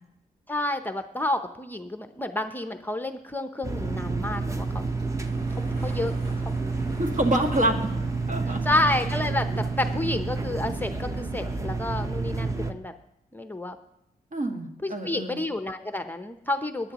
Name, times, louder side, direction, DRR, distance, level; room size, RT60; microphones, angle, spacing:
voice 1, 0.5-4.8 5.6-6.5 6.8-7.1 8.6-9.5 9.8-12.9 13.3-13.8 14.8-16.9, left 1 dB, 10° left, 8 dB, 0.7 m, -30 dB
sound 1, 3.6-12.7, right 3 dB, 20° right, 0.8 m, -29 dB
sound 2, 4.3-10.0, equal, 70° right, 5.6 m, -49 dB
voice 2, 7.0-7.9 8.3-8.8 14.3-15.4, right 1 dB, 55° right, 3 dB, 1.9 m, -26 dB
18.5 x 10.5 x 3.0 m, 0.83 s
cardioid pair, 75°, 16 cm